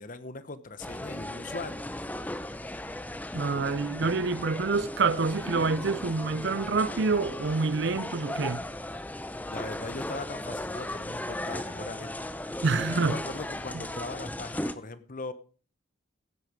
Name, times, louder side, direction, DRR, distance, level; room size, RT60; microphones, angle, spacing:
voice 1, 0.0-1.8 9.4-12.2 12.8-15.3, left 3 dB, 40° left, 0.9 m, -40 dB
sound 1, 0.8-14.7, left 1 dB, 10° left, 0.6 m, -36 dB
voice 2, 3.3-8.6 12.6-13.2, right 4 dB, 60° right, 0.6 m, -27 dB
16.0 x 8.4 x 5.1 m
head